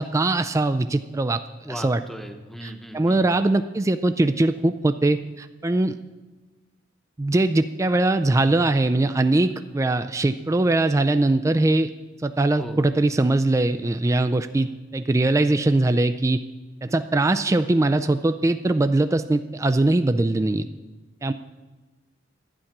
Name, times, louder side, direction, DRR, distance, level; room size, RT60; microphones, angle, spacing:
voice 1, 0.0-1.4 1.7-2.0 2.6-6.0 7.2-11.9 12.2-16.4 16.8-20.7 21.2-21.3, right 2 dB, 15° right, 10 dB, 0.3 m, -21 dB
voice 2, 1.6-3.3 12.6-13.1, equal, ahead, 5 dB, 0.9 m, -38 dB
11.5 x 9.9 x 5.9 m, 1.2 s
head